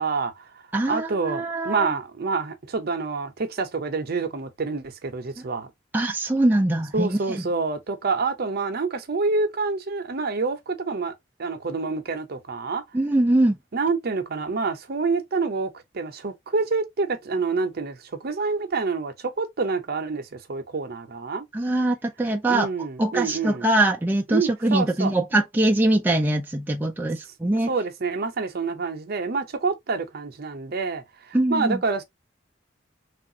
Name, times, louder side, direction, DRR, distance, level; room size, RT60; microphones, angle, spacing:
voice 1, 0.0-5.7 6.9-11.1 11.4-12.8 13.7-21.4 22.5-23.7 24.3-25.1 27.7-32.0, right 4 dB, 55° right, 0.6 m, -27 dB
voice 2, 0.7-1.9 5.9-7.4 12.9-13.6 21.5-22.7 23.0-27.7 31.3-31.8, right 1 dB, 10° right, 0.3 m, -22 dB
3.3 x 2.4 x 2.7 m
head